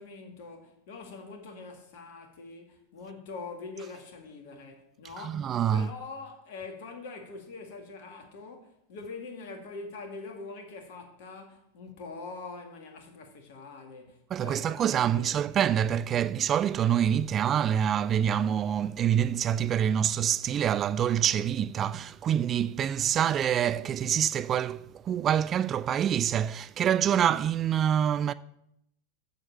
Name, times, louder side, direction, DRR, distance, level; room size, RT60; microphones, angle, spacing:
voice 1, 0.0-15.5, left 3 dB, 50° left, 2.1 m, -44 dB
voice 2, 5.2-5.9 14.3-28.3, right 9 dB, 25° right, 0.3 m, -26 dB
7.6 x 7.1 x 7.3 m
figure-of-eight pair, 90°, 0 cm